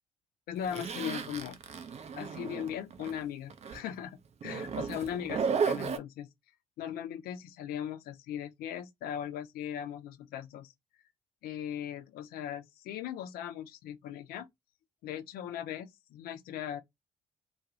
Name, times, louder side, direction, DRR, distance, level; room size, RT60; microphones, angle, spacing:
voice 1, 0.5-1.6 2.2-6.3 6.8-10.7 11.4-14.5 15.0-16.8, left 9 dB, 60° left, 0.5 m, -39 dB
Zipper (clothing), 0.7-3.2 3.5-3.8 4.4-6.0, right 6 dB, 40° right, 0.6 m, -34 dB
2.3 x 2.3 x 2.9 m
figure-of-eight pair, 45°, 17 cm